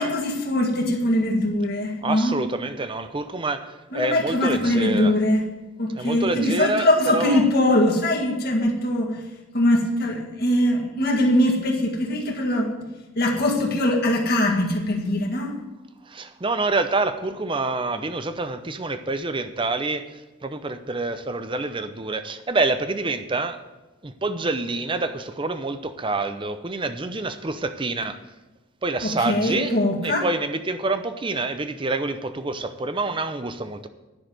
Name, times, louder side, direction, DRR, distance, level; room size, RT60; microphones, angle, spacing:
voice 1, 0.0-2.4 3.9-5.4 5.8-9.2 9.5-12.7 13.1-15.6 29.0-30.3, left 1 dB, 50° left, 1.8 m, -22 dB
voice 2, 2.0-5.1 6.0-7.4 16.0-23.6 24.0-28.2 28.8-29.7 30.0-33.9, right 3 dB, 25° right, 0.6 m, -27 dB
10.5 x 6.5 x 7.7 m
head